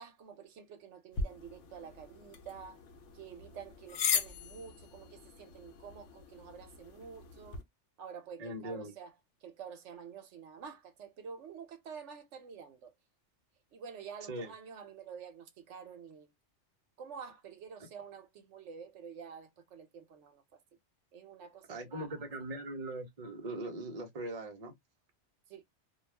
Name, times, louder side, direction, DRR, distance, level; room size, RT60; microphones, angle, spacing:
voice 1, 0.0-2.8 3.1-7.6 8.0-9.1 9.4-12.9 13.7-16.3 17.0-20.6 21.1-22.1 25.5-25.6, right 6 dB, 75° right, 1.0 m, -49 dB
sound 1, 1.1-7.6, left 6 dB, 85° left, 1.0 m, -39 dB
voice 2, 8.4-8.9 14.3-14.5 21.7-24.7, right 2 dB, 35° right, 0.8 m, -40 dB
2.3 x 2.3 x 3.2 m
omnidirectional pair, 1.2 m